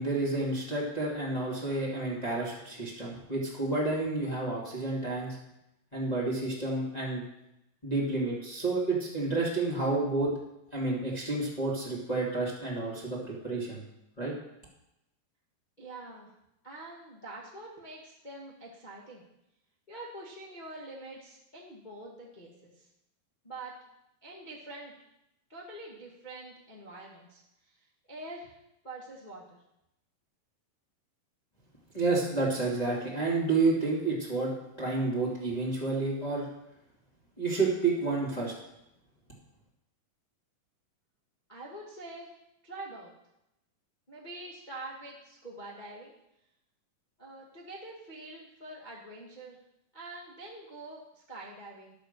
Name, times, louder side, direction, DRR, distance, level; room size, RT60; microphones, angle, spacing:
voice 1, 0.0-5.4 5.9-7.2 7.8-10.3 10.7-13.8 14.2-14.3 31.9-34.5 34.8-36.5 37.4-38.5, right 3 dB, 15° left, -5 dB, 2.0 m, -30 dB
voice 2, 15.8-16.3 16.6-19.2 19.9-22.9 23.4-23.8 24.2-24.9 25.5-27.4 27.7-27.8 28.1-28.6 28.8-29.6 41.5-42.4 42.6-43.1 44.1-46.1 47.2-49.6 49.9-51.9, right 2 dB, 55° left, -4 dB, 0.5 m, -45 dB
10.5 x 6.8 x 6.8 m, 0.85 s
omnidirectional pair, 4.2 m